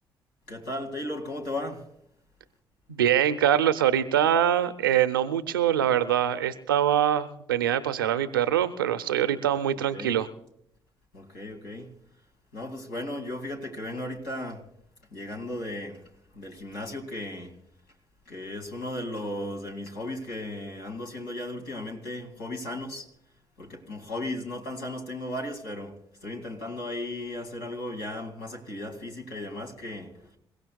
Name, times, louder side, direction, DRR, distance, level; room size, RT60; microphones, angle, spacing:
voice 1, 0.5-1.8 9.9-10.2 11.1-11.9 12.5-14.6 15.1-16.0 16.3-17.6 18.3-23.1 23.6-30.2, left 1 dB, 80° left, 2.3 m, -36 dB
voice 2, 2.9-10.3, right 10 dB, 90° right, 0.7 m, -24 dB
27.5 x 16.5 x 2.3 m
hypercardioid pair, 40°, 11 cm